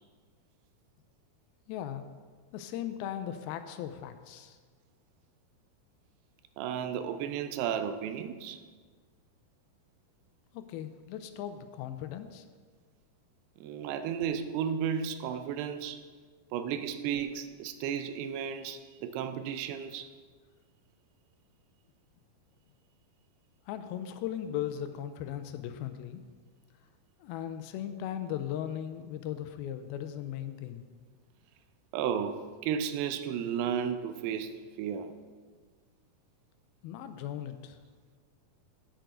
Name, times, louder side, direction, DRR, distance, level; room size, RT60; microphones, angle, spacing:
voice 1, 1.7-2.1 2.5-4.6 10.5-12.5 23.7-26.2 27.2-30.9 36.8-37.8, left 10 dB, 85° left, 9 dB, 2.3 m, -38 dB
voice 2, 6.6-8.6 13.6-16.0 16.5-20.1 31.9-35.1, right 8 dB, 90° right, 9 dB, 2.6 m, -33 dB
9.3 x 9.0 x 3.9 m, 1.5 s
omnidirectional pair, 4.5 m